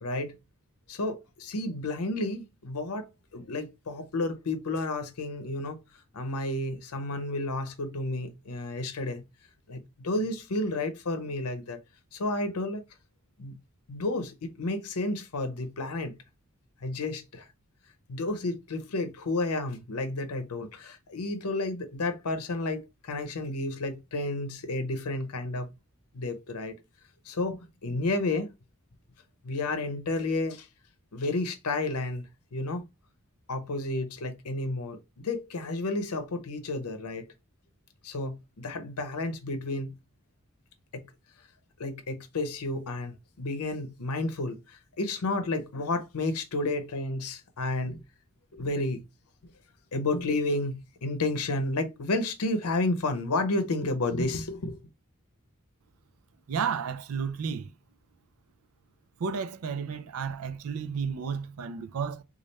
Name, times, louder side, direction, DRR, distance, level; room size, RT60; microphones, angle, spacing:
voice 1, 0.0-0.4 0.9-5.8 6.1-9.2 9.7-11.8 12.1-12.8 13.4-13.6 13.9-16.2 16.8-17.5 18.1-25.7 26.1-26.8 27.2-28.5 29.4-30.7 31.1-32.8 33.5-37.3 38.0-39.9 40.9-41.1 41.8-48.0 48.5-49.0 49.9-54.8, left 2 dB, 85° left, 0.6 m, -31 dB
voice 2, 56.5-57.7 59.2-62.2, right 6 dB, 75° right, 0.4 m, -32 dB
3.2 x 2.4 x 4.0 m
head